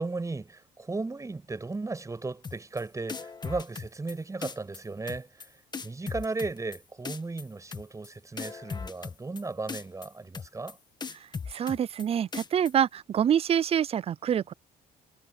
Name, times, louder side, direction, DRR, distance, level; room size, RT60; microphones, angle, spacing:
voice 1, 0.0-5.5 5.8-10.8, right 3 dB, 20° right, 7.1 m, -35 dB
sound 1, 2.4-2.8 3.1-4.1 4.4-4.8 5.1-5.5 5.7-6.8 7.0-7.4 7.7-8.1 8.4-9.4 9.7-10.1 10.3-10.7 11.0-12.0 12.3-12.7, left 5 dB, 25° left, 1.5 m, -37 dB
voice 2, 11.5-14.5, right 9 dB, 35° right, 0.4 m, -26 dB
cardioid pair, 110°, 17 cm